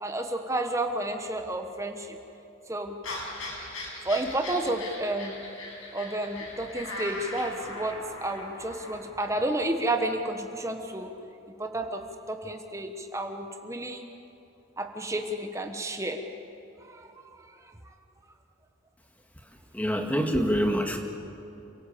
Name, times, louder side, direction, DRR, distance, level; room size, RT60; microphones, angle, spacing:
voice 1, 0.0-2.2 2.7-3.0 4.0-5.4 5.9-11.1 11.6-12.0 12.3-14.0 14.8-16.2 16.8-17.1 17.5-17.7, right 1 dB, 15° right, 5 dB, 1.3 m, -31 dB
sound 1, 3.0-9.0, left 2 dB, 85° left, 6.2 m, -39 dB
voice 2, 19.7-21.0, equal, 10° left, 3 dB, 2.0 m, -25 dB
29.0 x 17.5 x 8.6 m, 3.0 s
head